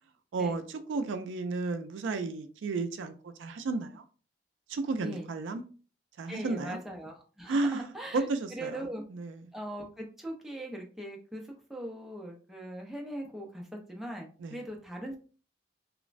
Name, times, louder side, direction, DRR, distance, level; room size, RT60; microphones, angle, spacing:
voice 1, 0.3-4.0 4.7-5.6 6.2-6.8 7.5-8.7 9.1-9.4 14.4-14.6, right 3 dB, 85° right, 0.4 m, -33 dB
voice 2, 6.3-9.0 9.5-15.2, right 1 dB, ahead, 0.4 m, -40 dB
3.0 x 2.0 x 2.4 m
head